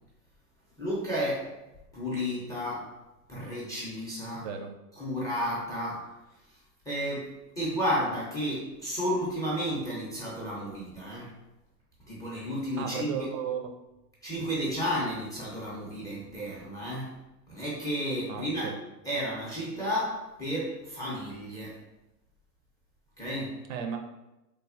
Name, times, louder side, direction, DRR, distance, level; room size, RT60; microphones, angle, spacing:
voice 1, 0.8-1.5 1.9-3.0 3.3-4.5 5.0-6.1 6.9-11.3 12.1-13.3 14.2-17.2 17.5-18.7 19.0-21.8 23.2-23.6, equal, 10° left, -6 dB, 0.4 m, -32 dB
voice 2, 4.4-4.7 12.8-13.7 18.3-18.7 23.7-24.0, right 7 dB, 55° right, 5 dB, 0.5 m, -34 dB
3.2 x 2.1 x 2.4 m, 0.96 s
hypercardioid pair, 105°, 47 cm